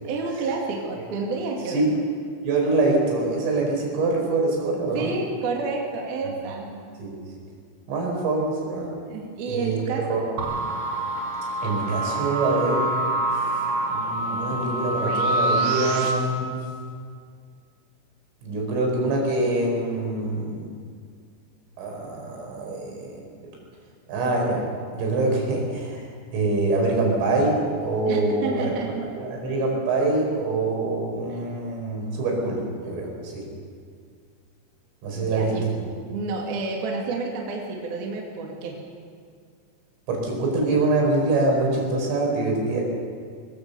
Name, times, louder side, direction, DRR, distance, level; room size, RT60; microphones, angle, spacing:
voice 1, 0.0-2.0 4.9-6.8 9.1-10.2 28.1-29.1 35.1-35.7 36.0-38.8, right 4 dB, 55° right, 0 dB, 3.9 m, -30 dB
voice 2, 2.4-5.1 7.0-7.1 7.9-9.0 9.5-9.8 10.1-10.2 10.5-10.6 11.6-13.1 13.9-16.6 18.4-20.7 21.8-23.2 24.1-24.6 24.9-26.1 26.3-27.6 27.8-28.7 29.2-33.4 35.0-35.7 40.1-42.8, right 2 dB, 80° right, 0 dB, 7.6 m, -24 dB
sound 1, 10.4-16.1, right 2 dB, 35° right, 3.2 m, -26 dB
23.0 x 20.5 x 6.9 m, 2.1 s
omnidirectional pair, 5.6 m